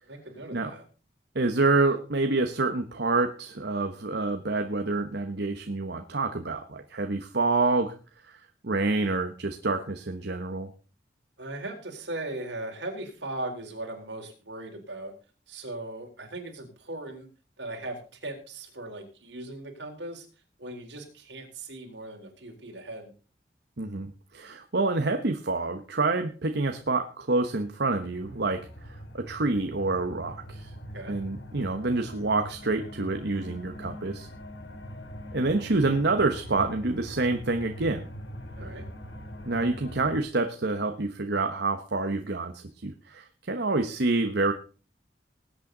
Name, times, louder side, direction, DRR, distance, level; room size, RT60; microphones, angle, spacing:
voice 1, 0.1-0.9 11.4-15.1 15.5-17.3 17.6-20.3 20.6-23.1 30.9-31.2 38.5-38.9, right 2 dB, 85° right, 3 dB, 3.9 m, -38 dB
voice 2, 1.3-7.9 8.2-8.4 8.6-10.7 23.8-30.7 31.1-34.3 35.3-38.0 39.4-44.5, right 3 dB, 65° right, 6 dB, 1.1 m, -27 dB
sound 1, 28.1-40.2, equal, 85° left, 2.5 m, -42 dB
20.0 x 8.8 x 3.9 m, 0.36 s
head